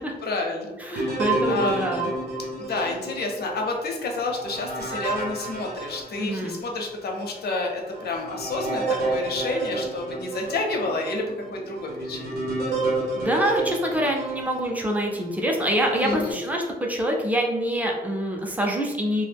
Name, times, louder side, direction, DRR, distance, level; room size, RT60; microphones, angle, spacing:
voice 1, 0.2-1.9 2.6-12.4 16.0-16.4, left 2 dB, 85° left, 1 dB, 0.6 m, -29 dB
voice 2, 0.8-2.1 6.2-6.6 13.1-16.6 16.9-19.2, equal, 10° right, 0 dB, 0.4 m, -25 dB
sound 1, 0.9-6.7 7.2-7.3 7.9-15.1 15.7-16.3, right 2 dB, 90° right, 0.8 m, -31 dB
2.3 x 2.0 x 3.3 m, 1.1 s
wide cardioid pair, 170°, 16 cm